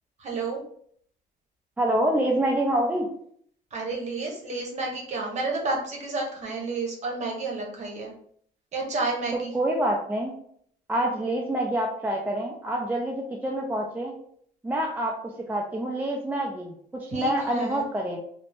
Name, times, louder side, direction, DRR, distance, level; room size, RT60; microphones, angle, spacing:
voice 1, 0.2-0.6 3.7-8.1 8.7-9.5 17.1-17.8, right 3 dB, 45° right, -1 dB, 0.9 m, -31 dB
voice 2, 1.8-3.1 9.5-10.3 10.9-14.1 14.6-18.2, right 1 dB, 10° right, -1 dB, 0.4 m, -27 dB
2.7 x 2.0 x 3.2 m, 0.63 s
cardioid pair, 110°, 17 cm